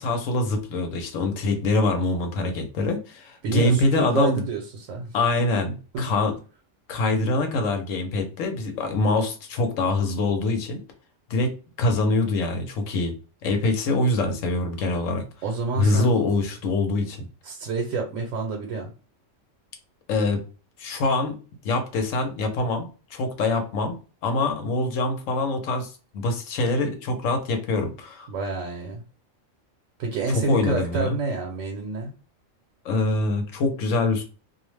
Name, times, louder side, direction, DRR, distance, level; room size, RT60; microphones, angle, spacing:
voice 1, 0.0-4.4 5.1-6.3 6.9-10.8 11.3-11.5 11.8-13.1 13.4-15.3 15.8-17.2 20.1-20.4 20.8-21.4 21.6-24.0 24.2-25.9 26.1-28.3 30.3-31.2 32.8-34.2, left 2 dB, 75° left, 6 dB, 1.0 m, -24 dB
voice 2, 3.4-5.1 5.9-6.1 15.4-16.1 17.4-18.9 28.3-29.0 30.0-32.1, right 3 dB, 80° right, 2 dB, 1.0 m, -28 dB
2.5 x 2.0 x 3.1 m, 0.35 s
omnidirectional pair, 1.3 m